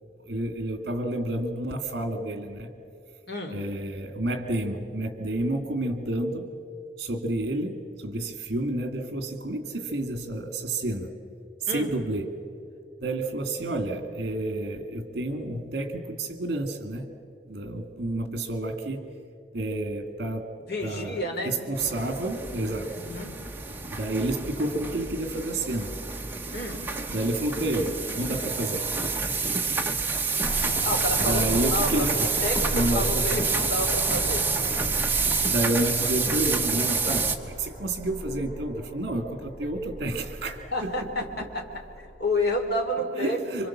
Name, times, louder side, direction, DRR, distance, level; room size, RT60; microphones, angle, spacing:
voice 1, 0.2-2.7 3.5-6.5 7.0-11.1 11.6-12.4 13.0-17.1 17.5-19.1 19.5-20.5 20.8-22.9 23.9-25.9 27.1-28.9 31.2-32.3 32.7-33.4 35.4-41.1 43.2-43.7, right 1 dB, 55° right, 7 dB, 2.3 m, -30 dB
voice 2, 3.3-3.6 11.7-11.9 20.7-21.6 22.8-23.3 26.5-26.9 30.8-34.5 40.7-41.6 42.2-43.7, left 1 dB, 55° left, 2 dB, 3.2 m, -30 dB
sound 1, 21.7-37.4, right 4 dB, 10° right, 1.1 m, -28 dB
sound 2, 30.4-42.8, equal, 80° left, 3.5 m, -37 dB
27.5 x 25.0 x 7.3 m, 2.6 s
head